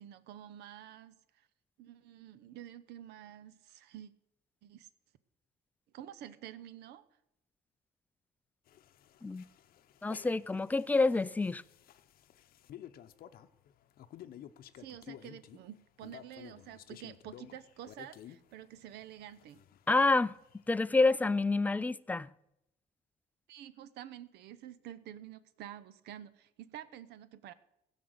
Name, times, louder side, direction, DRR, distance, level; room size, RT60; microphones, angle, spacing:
voice 1, 0.0-1.5 1.8-4.1 4.6-4.9 5.9-7.0 14.8-19.6 23.5-27.5, right 11 dB, 80° right, 0.8 m, -49 dB
sound 1, 8.7-21.3, left 11 dB, 60° left, 0.7 m, -54 dB
voice 2, 10.0-11.6 19.9-20.3 20.7-22.3, left 3 dB, 10° left, 0.3 m, -28 dB
16.0 x 5.7 x 7.9 m
cardioid pair, 110°, 17 cm